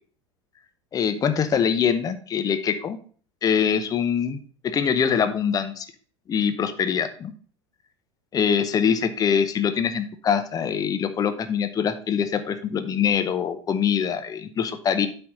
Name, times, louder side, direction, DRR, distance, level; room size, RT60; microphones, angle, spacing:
voice 1, 0.9-3.0 3.4-5.9 6.3-7.3 8.3-15.1, left 7 dB, 25° left, 9 dB, 0.8 m, -24 dB
8.6 x 4.4 x 5.3 m, 0.43 s
figure-of-eight pair, 80°, 15 cm